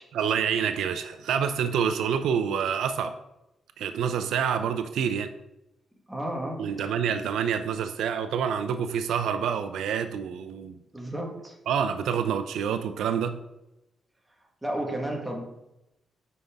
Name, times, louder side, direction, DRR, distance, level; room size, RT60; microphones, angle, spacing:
voice 1, 0.1-3.2 3.8-5.3 6.6-10.8 11.7-13.4, right 7 dB, 85° right, 0.5 m, -27 dB
voice 2, 6.1-6.9 10.9-11.5 14.6-15.5, right 1 dB, 5° right, 1.4 m, -32 dB
9.2 x 5.4 x 3.5 m
cardioid pair, 135°, 0 cm